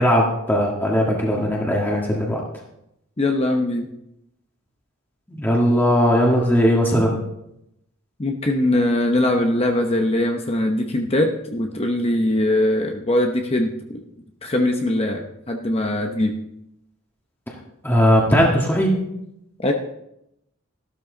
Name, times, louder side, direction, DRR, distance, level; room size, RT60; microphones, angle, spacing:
voice 1, 0.0-2.4 5.3-7.2 17.8-19.0, equal, 10° left, -2 dB, 1.7 m, -18 dB
voice 2, 3.2-3.9 8.2-14.0 14.4-16.3 19.6-19.7, left 1 dB, 25° left, 3 dB, 0.9 m, -21 dB
13.5 x 12.5 x 3.9 m, 0.82 s
head